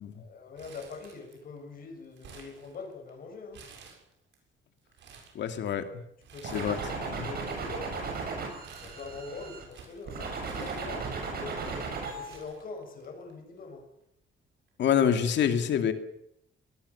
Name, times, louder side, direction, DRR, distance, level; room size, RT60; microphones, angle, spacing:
voice 1, 0.1-3.6 6.3-8.2 8.8-11.7 12.1-13.9, left 4 dB, 45° left, 4 dB, 6.9 m, -43 dB
Crumpling crinkling, 0.6-1.6 1.8-3.1 3.5-4.4 4.8-5.4 6.2-7.0 7.3-11.3 11.9-12.0 12.3-13.3 13.6-13.7 14.7-14.9, right 5 dB, 65° right, 7.2 m, -53 dB
voice 2, 5.3-5.8 6.5-6.8 14.8-15.9, left 9 dB, 65° left, 8 dB, 2.5 m, -25 dB
sound 1, 6.4-9.6 10.1-12.4, right 4 dB, 50° right, 7.4 m, -36 dB
22.5 x 19.5 x 7.2 m, 0.76 s
cardioid pair, 170°, 20 cm